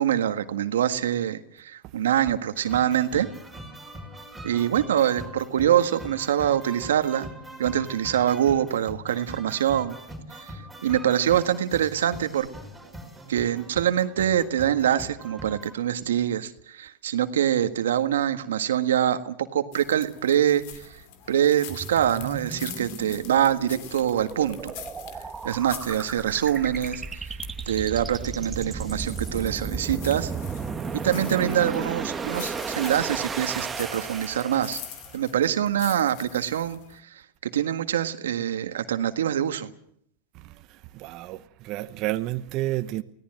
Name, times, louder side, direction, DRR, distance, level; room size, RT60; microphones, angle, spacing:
voice 1, 0.0-3.3 4.4-7.3 7.6-10.0 10.4-12.5 13.3-21.0 21.3-24.7 25.4-27.3 27.7-30.3 30.9-34.8 35.1-39.7, right 10 dB, 90° right, 1.6 m, -25 dB
sound 1, 2.5-15.8, right 1 dB, ahead, 5.4 m, -42 dB
sound 2, 19.7-37.0, left 10 dB, 55° left, 2.7 m, -45 dB
sound 3, 21.7-35.1, right 5 dB, 20° right, 1.4 m, -34 dB
voice 2, 40.3-43.0, right 16 dB, 45° right, 1.0 m, -31 dB
24.0 x 17.5 x 7.8 m
hypercardioid pair, 120°, 0 cm